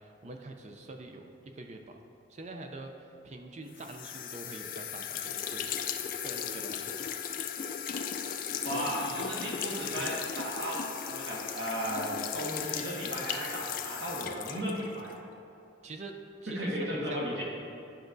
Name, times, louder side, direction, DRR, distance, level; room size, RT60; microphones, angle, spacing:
voice 1, 0.0-2.0 2.3-5.7 6.0-7.1 8.6-9.4 9.9-10.2 15.8-17.2, right 2 dB, 40° right, 4 dB, 0.5 m, -45 dB
sound 1, 3.8-15.2, left 8 dB, 50° left, 0.3 m, -37 dB
voice 2, 8.6-15.1 16.5-17.4, equal, 70° right, -5 dB, 1.5 m, -35 dB
10.0 x 5.8 x 2.6 m, 2.6 s
head